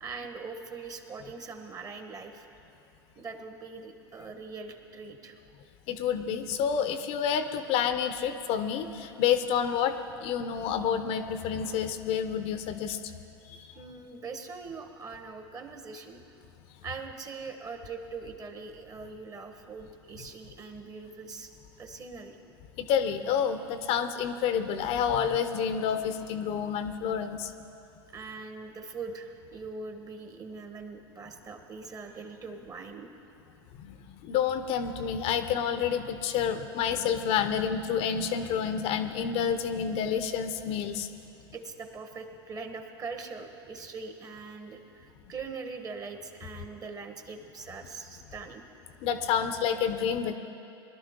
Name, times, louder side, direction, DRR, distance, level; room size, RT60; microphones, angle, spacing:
voice 1, 0.0-2.5 3.1-5.4 13.7-16.2 16.8-21.5 21.8-22.4 28.1-33.1 41.5-48.7, right 4 dB, 25° right, 6 dB, 1.3 m, -42 dB
voice 2, 5.9-10.0 10.2-13.0 13.5-13.7 22.8-27.5 33.8-34.0 34.2-41.1 49.0-50.4, left 8 dB, 50° left, 10 dB, 0.7 m, -29 dB
21.0 x 11.5 x 3.7 m, 2.8 s
hypercardioid pair, 95°, 13 cm